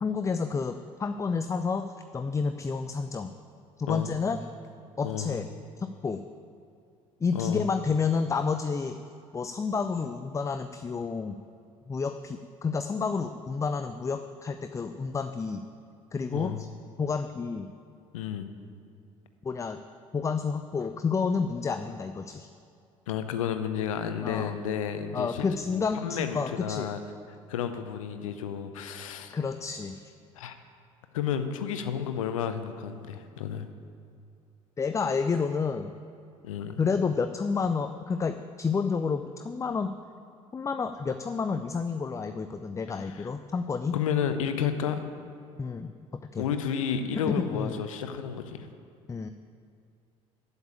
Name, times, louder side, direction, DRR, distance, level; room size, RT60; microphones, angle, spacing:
voice 1, 0.0-3.3 3.8-4.4 5.0-5.5 5.8-6.2 7.2-9.0 9.3-11.4 11.9-15.6 16.1-16.7 17.0-17.7 19.4-19.8 20.1-22.5 24.2-24.6 25.1-26.9 29.3-30.1 34.8-35.9 36.8-40.0 40.5-44.0 45.6-45.9 46.2-46.4 47.3-47.8 49.1-49.3, left 5 dB, 20° left, 9 dB, 0.4 m, -30 dB
voice 2, 5.0-5.3 7.3-7.6 16.3-16.6 18.1-18.5 23.1-27.0 27.5-29.3 30.4-30.6 31.1-33.7 36.4-36.8 42.9-43.3 43.9-45.0 46.4-48.7, left 8 dB, 75° left, 9 dB, 0.7 m, -31 dB
8.0 x 7.0 x 8.5 m, 2.5 s
figure-of-eight pair, 60°, 17 cm